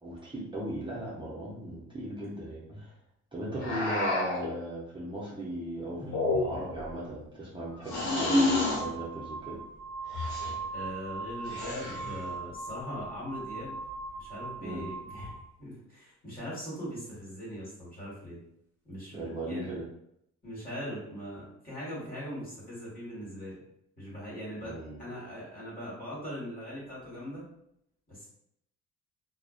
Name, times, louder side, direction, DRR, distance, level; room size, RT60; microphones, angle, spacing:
voice 1, 0.0-2.9 3.3-9.6 14.6-14.8 19.1-19.8 24.6-25.0, right 1 dB, 15° right, -7 dB, 0.6 m, -38 dB
sound 1, 3.6-4.5 6.0-6.7 7.9-8.9 10.1-10.5 11.4-12.2, left 2 dB, 85° left, 1.0 m, -29 dB
sound 2, 6.7-6.9 7.7-15.4, right 3 dB, 5° left, 1.0 m, -40 dB
voice 2, 10.7-13.8 14.2-18.4 18.8-19.8 20.4-23.6 24.0-24.7 25.0-27.4 28.1-28.3, equal, 30° left, -6 dB, 1.4 m, -40 dB
2.5 x 2.1 x 2.3 m, 0.75 s
cardioid pair, 90°, 30 cm